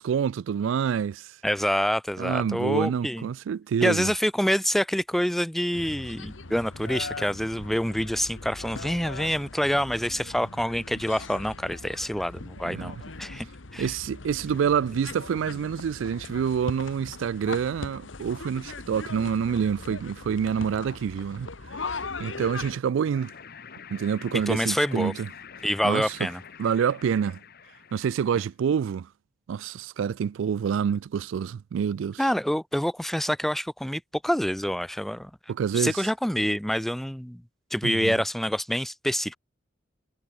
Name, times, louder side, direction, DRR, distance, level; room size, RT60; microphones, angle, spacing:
voice 1, 0.0-1.4 2.2-4.1 12.6-13.0 13.8-23.3 23.9-25.3 25.8-26.3 26.6-27.4 27.9-29.1 29.5-32.2 35.5-36.0 37.8-38.1, right 7 dB, 75° right, 0.3 m, -27 dB
voice 2, 1.4-3.3 3.8-13.5 13.7-13.9 24.3-25.1 25.6-26.4 32.2-35.3 35.7-37.4 37.7-39.4, equal, ahead, 0.3 m, -27 dB
sound 1, 5.7-22.8, left 3 dB, 80° left, 1.5 m, -40 dB
sound 2, 23.1-28.5, left 7 dB, 55° left, 1.9 m, -46 dB
head